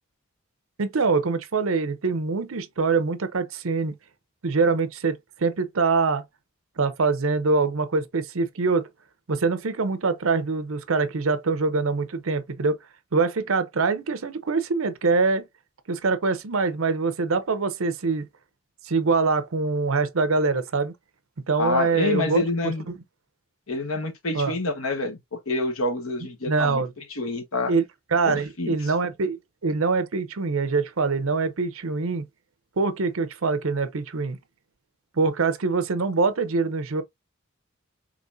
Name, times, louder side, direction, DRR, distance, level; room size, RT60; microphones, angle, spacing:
voice 1, 0.8-3.9 4.4-6.2 6.8-8.9 9.3-12.8 13.1-15.5 15.9-18.2 18.8-20.9 21.5-22.4 22.9-23.0 24.3-24.5 26.5-26.9 27.7-27.8 28.1-32.2 32.8-34.4 35.2-37.0, right 4 dB, 80° right, 0.7 m, -24 dB
voice 2, 21.6-22.8 23.7-25.2 25.5-26.8 27.1-27.7 28.2-28.9, left 2 dB, 85° left, 1.3 m, -27 dB
5.1 x 3.0 x 2.6 m
head